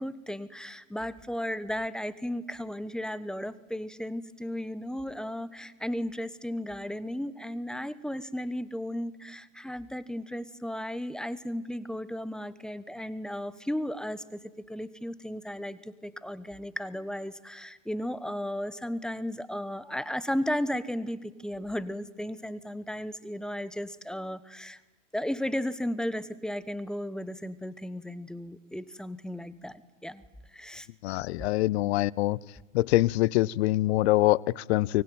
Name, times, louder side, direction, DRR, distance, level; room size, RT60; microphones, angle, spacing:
voice 1, 0.0-14.4 14.7-24.8 25.1-30.2 30.5-30.9, equal, ahead, 16 dB, 1.1 m, -35 dB
voice 2, 31.0-32.4 32.7-35.0, left 17 dB, 55° left, 25 dB, 0.8 m, -24 dB
24.0 x 23.5 x 9.4 m, 1.1 s
hypercardioid pair, 100°, 40 cm